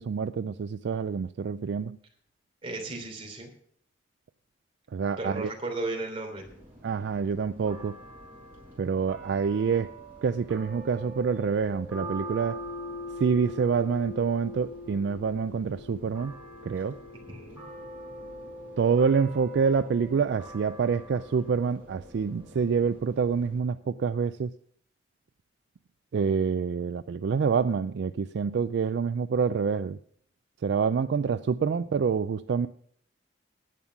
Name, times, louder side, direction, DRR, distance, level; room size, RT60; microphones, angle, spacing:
voice 1, 0.0-2.0 4.9-5.5 6.8-7.9 8.8-9.9 10.2-12.6 13.2-16.4 16.6-17.0 18.8-24.5 26.1-30.0 30.6-32.7, right 6 dB, 65° right, 13 dB, 0.3 m, -27 dB
voice 2, 2.6-3.5 5.2-6.4 17.3-17.6, right 2 dB, 30° right, 2 dB, 3.2 m, -35 dB
sound 1, 6.4-23.6, left 1 dB, 10° right, 5.4 m, -43 dB
11.0 x 8.9 x 5.9 m, 0.63 s
head